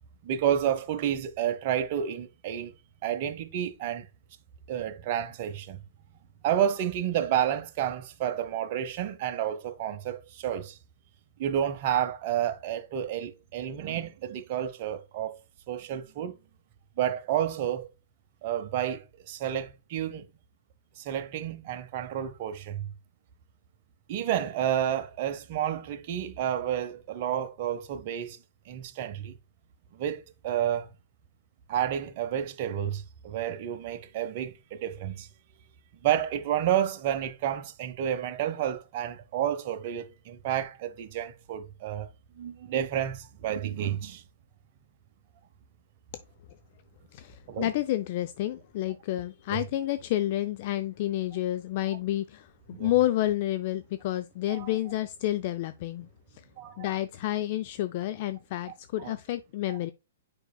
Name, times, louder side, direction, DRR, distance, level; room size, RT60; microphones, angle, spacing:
voice 1, 0.2-2.7 3.0-4.1 4.7-5.8 6.4-10.8 11.4-15.4 15.7-16.3 17.0-17.9 18.4-20.3 21.0-22.9 24.1-28.4 28.7-29.4 29.9-30.9 31.7-35.3 36.0-42.1 42.4-44.2 47.5-47.7 52.7-52.9 54.5-54.7 56.6-56.9 59.0-59.1 59.7-59.8, right 10 dB, 45° right, 0.9 m, -30 dB
voice 2, 47.1-52.5 52.8-56.1 56.8-59.9, left 14 dB, 45° left, 0.4 m, -29 dB
8.1 x 5.3 x 2.3 m
figure-of-eight pair, 120°, 0 cm